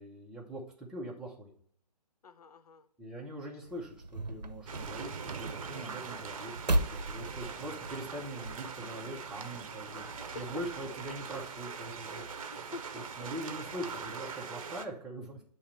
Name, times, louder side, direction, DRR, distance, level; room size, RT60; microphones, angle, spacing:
voice 1, 0.0-1.5 3.0-10.1 10.3-12.7 13.2-15.4, right 1 dB, ahead, 0.7 m, -42 dB
voice 2, 2.2-2.9 7.1-7.6 10.0-10.4 12.4-13.3, left 4 dB, 65° left, 0.6 m, -49 dB
sound 1, 3.7-8.7, right 1 dB, 90° right, 0.7 m, -36 dB
sound 2, 4.7-14.8, right 5 dB, 55° right, 0.7 m, -42 dB
8.3 x 3.1 x 4.3 m
figure-of-eight pair, 145°, 21 cm